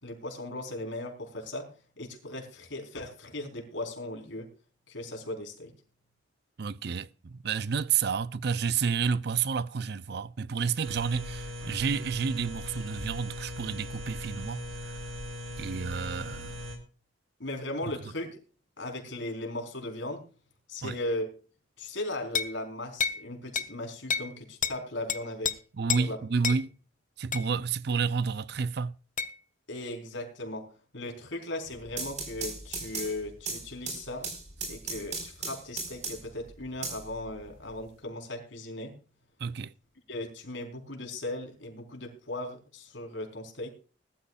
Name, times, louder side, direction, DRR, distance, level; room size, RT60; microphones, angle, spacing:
voice 1, 0.0-1.7 2.0-4.5 4.9-5.7 17.4-18.4 18.8-20.2 20.7-21.3 21.8-25.5 26.0-26.2 29.7-30.7 30.9-34.3 34.7-38.9 40.1-43.7, left 1 dB, 75° left, 4.3 m, -37 dB
voice 2, 6.6-15.0 15.6-16.5 20.8-21.0 25.8-26.7 27.2-28.9 39.4-39.7, right 6 dB, 55° right, 0.5 m, -30 dB
sound 1, 10.8-16.8, left 1 dB, 90° right, 3.6 m, -39 dB
sound 2, 22.3-22.6 23.0-23.2 23.6-23.7 24.1-24.3 24.6-24.8 25.1-25.5 25.9-26.1 26.4-26.6 27.3-27.5 29.2-29.3, left 6 dB, 45° left, 0.8 m, -29 dB
sound 3, 31.7-36.4 36.8-37.8, right 4 dB, 40° right, 4.7 m, -37 dB
20.5 x 13.0 x 2.4 m
head